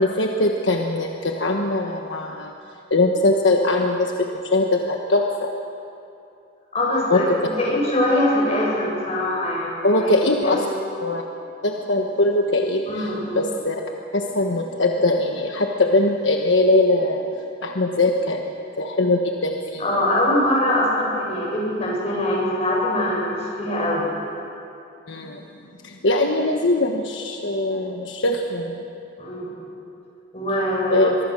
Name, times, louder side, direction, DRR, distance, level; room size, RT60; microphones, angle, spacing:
voice 1, 0.0-2.5 2.9-5.5 7.1-7.4 9.8-10.6 11.0-11.2 11.6-13.8 14.1-17.3 17.6-20.0 25.1-25.4 25.8-28.8 30.9-31.1, left 2 dB, 70° left, 2 dB, 1.3 m, -21 dB
voice 2, 6.7-10.1 10.4-10.5 12.9-13.4 19.8-24.0 29.2-29.6 30.3-31.2, left 1 dB, 35° left, -4 dB, 8.0 m, -23 dB
23.5 x 23.5 x 6.5 m, 2.7 s
head